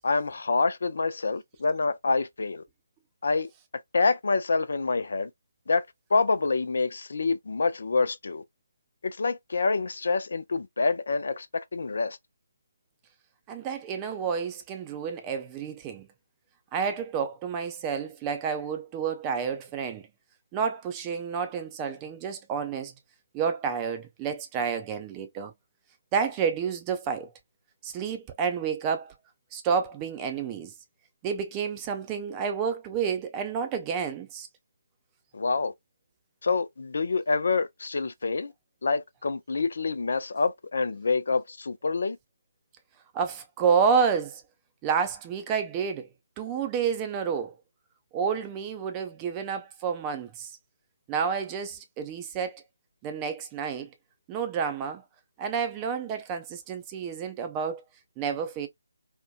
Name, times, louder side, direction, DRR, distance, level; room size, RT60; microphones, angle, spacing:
voice 1, 0.0-2.6 3.2-3.5 3.9-5.3 5.7-5.9 6.1-8.4 9.0-12.2 35.3-35.7 36.4-38.5 38.8-42.2, left 4 dB, 60° left, 0.4 m, -27 dB
voice 2, 13.5-16.1 16.7-20.1 20.5-22.9 23.3-25.5 26.1-27.3 27.8-29.1 29.5-30.7 31.2-34.5 43.1-44.4 44.8-46.1 46.4-47.5 48.1-50.6 51.1-52.6 53.0-53.9 54.3-55.0 55.4-57.8 58.2-58.7, right 6 dB, 20° right, 0.5 m, -29 dB
2.6 x 2.2 x 2.3 m
figure-of-eight pair, 150°, 0 cm